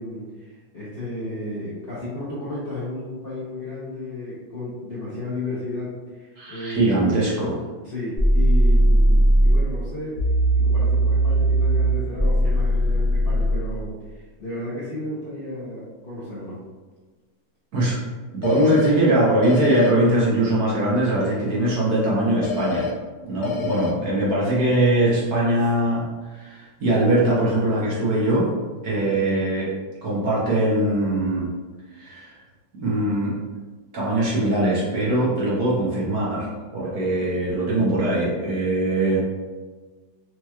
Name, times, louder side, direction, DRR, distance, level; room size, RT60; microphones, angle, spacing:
voice 1, 0.0-7.2 7.8-10.2 10.5-16.6 23.4-24.0 28.9-29.1, left 2 dB, 50° left, -9 dB, 0.6 m, -33 dB
voice 2, 6.4-7.5 17.7-18.0 18.3-22.9 23.3-26.1 26.3-28.5 28.8-29.7 30.0-31.5 31.9-32.3 32.8-33.3 33.9-39.2, right 1 dB, 55° right, -6 dB, 1.3 m, -21 dB
sound 1, 8.2-9.6 10.2-13.6, right 1 dB, 20° right, 0.6 m, -18 dB
sound 2, 18.4-18.9 19.4-19.9 22.4-22.9 23.4-23.9, left 6 dB, 75° left, 1.0 m, -27 dB
4.6 x 2.9 x 2.3 m, 1.4 s
omnidirectional pair, 2.1 m